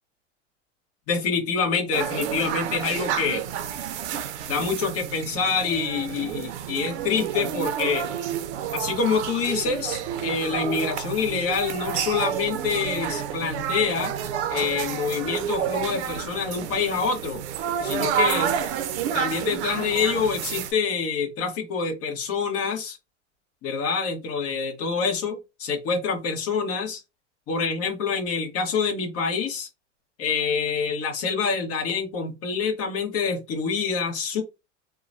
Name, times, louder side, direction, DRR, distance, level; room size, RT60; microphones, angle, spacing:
voice 1, 1.1-3.4 4.5-8.1 8.7-14.1 14.5-17.4 17.8-18.5 19.1-23.0 23.6-27.0 27.5-29.7 30.2-34.4, left 5 dB, 40° left, 1.2 m, -26 dB
sound 1, 1.9-20.7, right 9 dB, 60° right, 0.6 m, -30 dB
2.9 x 2.2 x 2.6 m
hypercardioid pair, 105°, 38 cm